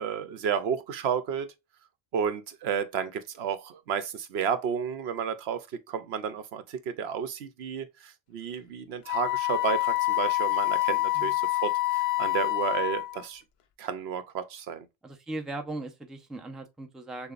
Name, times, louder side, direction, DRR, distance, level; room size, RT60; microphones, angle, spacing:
voice 1, 0.0-1.5 2.1-13.4 13.8-14.9, right 7 dB, 75° right, 0.9 m, -32 dB
Wind instrument woodwind instrument, 9.1-13.2, left 18 dB, 75° left, 0.8 m, -27 dB
voice 2, 15.0-17.3, right 2 dB, ahead, 0.6 m, -38 dB
6.7 x 2.3 x 2.5 m
omnidirectional pair, 1.1 m